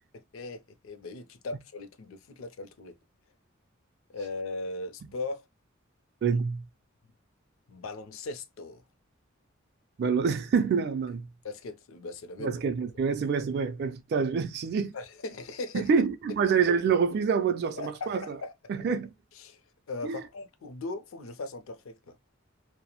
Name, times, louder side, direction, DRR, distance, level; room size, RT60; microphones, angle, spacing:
voice 1, 0.3-3.0 4.1-5.4 6.3-6.4 7.7-8.8 11.4-12.5 14.9-15.9 16.3-16.4 17.8-18.1 18.4-18.5 19.3-19.6 19.9-22.2, left 3 dB, 75° left, 0.5 m, -38 dB
voice 2, 6.2-6.6 10.0-11.3 12.4-14.9 15.7-18.4 18.7-19.1 20.0-20.2, right 6 dB, 50° right, 0.3 m, -27 dB
2.9 x 2.0 x 2.2 m
head